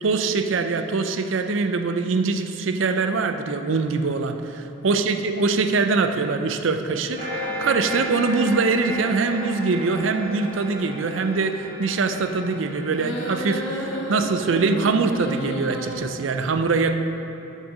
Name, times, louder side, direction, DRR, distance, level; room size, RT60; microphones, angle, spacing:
voice 1, 0.0-7.3 7.6-17.0, right 4 dB, 70° right, 8 dB, 0.5 m, -23 dB
sound 1, 7.1-16.2, equal, 50° right, 1.3 m, -34 dB
sound 2, 12.9-15.9, equal, 65° left, 1.1 m, -32 dB
6.5 x 6.4 x 6.1 m, 3.0 s
head